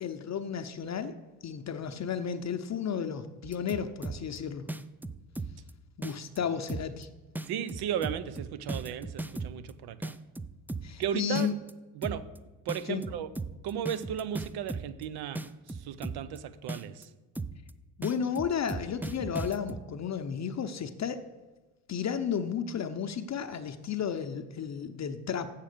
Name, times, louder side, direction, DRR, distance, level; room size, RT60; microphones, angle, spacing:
voice 1, 0.0-1.1 1.4-4.6 6.0-7.1 10.8-11.5 12.9-13.0 18.0-21.2 21.9-25.5, left 7 dB, 40° left, 8 dB, 0.7 m, -33 dB
sound 1, 3.4-4.4 4.7-5.7 6.0-6.4 6.7-7.0 7.4-9.7 10.0-11.0 11.4-11.7 12.0-12.4 12.7-15.0 15.4-16.4 16.7-17.0 17.4-17.7 18.0-19.8, right 2 dB, 5° right, 0.3 m, -36 dB
voice 2, 7.5-10.1 11.0-11.5 11.9-12.2 12.6-13.3 13.6-17.1, right 9 dB, 65° right, 13 dB, 0.8 m, -35 dB
7.4 x 7.4 x 6.7 m, 1.2 s
supercardioid pair, 75°, 41 cm